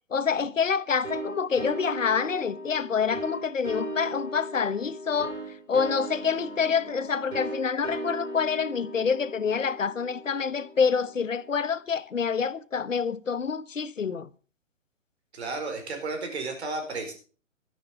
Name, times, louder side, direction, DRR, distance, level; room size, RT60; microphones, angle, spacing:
voice 1, 0.1-5.3 5.7-14.3, left 6 dB, 75° left, 1.1 m, -27 dB
sound 1, 1.0-11.5, right 1 dB, 85° right, 5.2 m, -38 dB
voice 2, 15.3-17.1, right 3 dB, 55° right, 4.8 m, -33 dB
13.0 x 11.0 x 4.9 m
figure-of-eight pair, 130°, 38 cm